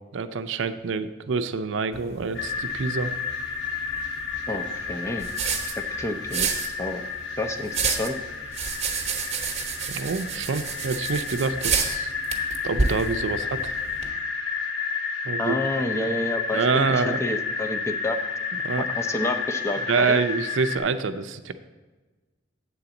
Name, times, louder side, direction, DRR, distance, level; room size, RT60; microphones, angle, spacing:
voice 1, 0.1-3.1 9.9-12.1 12.6-13.7 15.3-15.6 16.5-17.2 18.6-18.8 19.9-21.5, right 4 dB, 70° right, 10 dB, 0.5 m, -26 dB
sound 1, 1.9-14.1, right 5 dB, 35° right, 0.9 m, -31 dB
sound 2, 2.3-20.8, left 5 dB, 70° left, 1.0 m, -31 dB
voice 2, 4.5-5.3 6.0-6.5 6.8-7.0 7.4-8.2 15.4-18.2 18.9-20.2, left 1 dB, 15° left, 5 dB, 0.5 m, -29 dB
8.4 x 3.9 x 7.0 m, 1.2 s
head